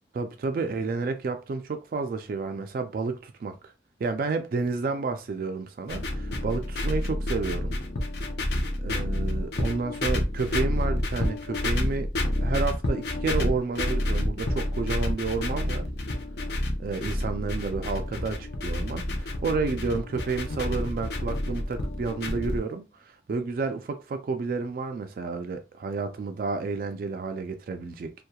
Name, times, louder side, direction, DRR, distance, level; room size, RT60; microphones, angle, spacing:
voice 1, 0.1-3.6 4.0-7.7 8.8-12.1 12.4-15.8 16.8-28.1, right 4 dB, 55° right, 0.3 m, -31 dB
sound 1, 5.9-22.6, left 1 dB, 70° left, 0.5 m, -29 dB
2.8 x 2.1 x 2.3 m
head